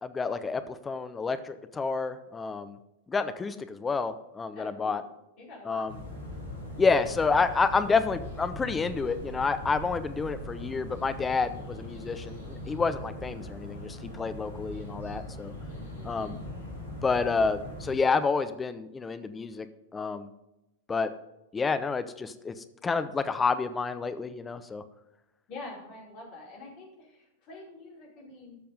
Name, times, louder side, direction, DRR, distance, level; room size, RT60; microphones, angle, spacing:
voice 1, 0.0-2.8 3.1-5.0 5.7-5.9 6.8-15.5 16.0-16.3 17.0-19.7 19.9-20.3 20.9-21.1 21.5-22.5 22.8-24.8, left 4 dB, 15° left, 11 dB, 0.7 m, -29 dB
voice 2, 4.5-5.0 5.4-5.9 15.7-16.3 25.5-28.6, left 2 dB, 40° left, -3 dB, 4.5 m, -46 dB
sound 1, 5.9-18.0, left 1 dB, 75° left, 4.0 m, -41 dB
13.0 x 6.8 x 5.4 m, 0.90 s
figure-of-eight pair, 90°, 0 cm